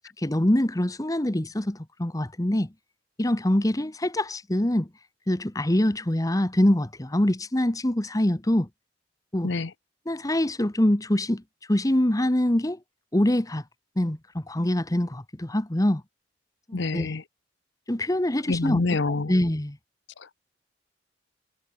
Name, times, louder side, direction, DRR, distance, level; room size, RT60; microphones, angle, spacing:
voice 1, 0.2-2.7 3.2-4.9 5.3-8.7 9.3-9.5 10.1-11.4 11.7-12.8 13.1-13.6 14.0-16.0 16.7-17.1 17.9-19.8, left 1 dB, 20° left, 1.1 m, -24 dB
voice 2, 16.7-17.2 18.5-19.3 20.2-20.3, left 3 dB, 70° left, 0.9 m, -27 dB
head